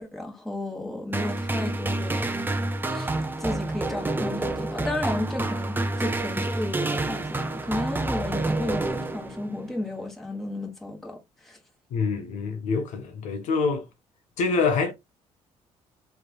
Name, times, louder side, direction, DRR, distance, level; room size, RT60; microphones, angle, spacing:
voice 1, 0.0-2.3 2.9-11.6, left 1 dB, ahead, 1.3 m, -33 dB
sound 1, 1.1-9.6, right 2 dB, 15° right, 0.6 m, -28 dB
voice 2, 11.9-13.9 14.4-14.9, left 4 dB, 80° left, 0.7 m, -25 dB
3.2 x 3.2 x 2.2 m
cardioid pair, 80°, 13 cm